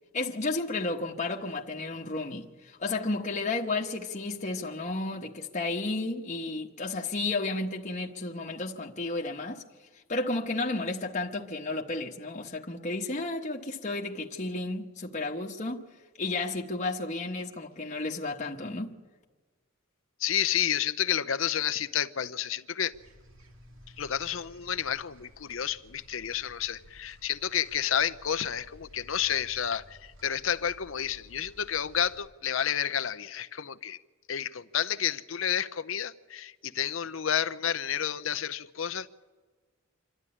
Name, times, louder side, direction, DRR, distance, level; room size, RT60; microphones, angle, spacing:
voice 1, 0.1-9.6 9.9-15.9 16.2-19.0, left 2 dB, 35° left, 1.2 m, -32 dB
voice 2, 20.2-22.9 24.0-34.0 34.3-39.1, left 9 dB, 70° left, 0.7 m, -30 dB
sound 1, 22.9-32.3, equal, 75° right, 2.4 m, -55 dB
26.5 x 12.5 x 9.9 m
head